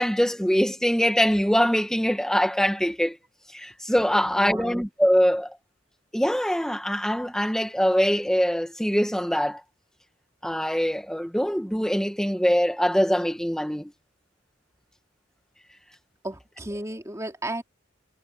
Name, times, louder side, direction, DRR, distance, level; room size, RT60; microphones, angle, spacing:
voice 1, 0.0-3.2 3.5-5.6 6.1-9.6 10.4-13.9, equal, 5° left, 1.8 m, -23 dB
voice 2, 4.2-4.9 16.2-17.6, right 1 dB, 15° right, 2.9 m, -34 dB
head